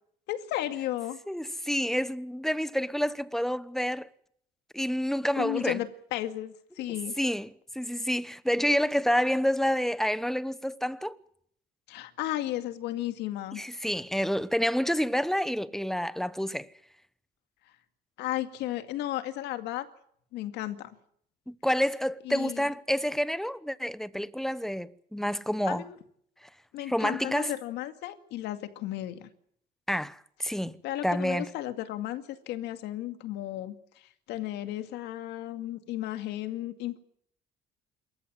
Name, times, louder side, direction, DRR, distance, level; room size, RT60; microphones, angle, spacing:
voice 1, 0.3-1.2 5.4-7.2 11.9-13.6 18.2-19.9 20.3-20.9 22.2-22.7 25.7-26.0 26.7-29.3 30.8-37.0, left 14 dB, 85° left, 2.2 m, -34 dB
voice 2, 1.3-4.1 4.7-5.8 7.2-11.2 13.5-16.7 21.5-25.8 26.9-27.5 29.9-30.8 31.0-31.5, equal, ahead, 0.9 m, -28 dB
26.5 x 14.5 x 9.1 m
cardioid pair, 110°, 17 cm